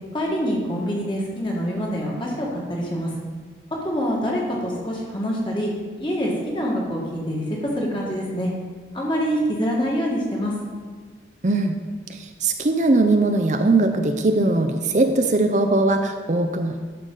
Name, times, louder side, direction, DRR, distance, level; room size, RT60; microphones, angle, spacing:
voice 1, 0.1-3.1 3.8-5.7 6.0-8.5 8.9-10.5, equal, 30° left, -3 dB, 1.7 m, -25 dB
voice 2, 11.4-11.8 12.1-16.8, right 2 dB, 45° right, 6 dB, 0.5 m, -20 dB
11.0 x 6.8 x 3.9 m, 1.5 s
head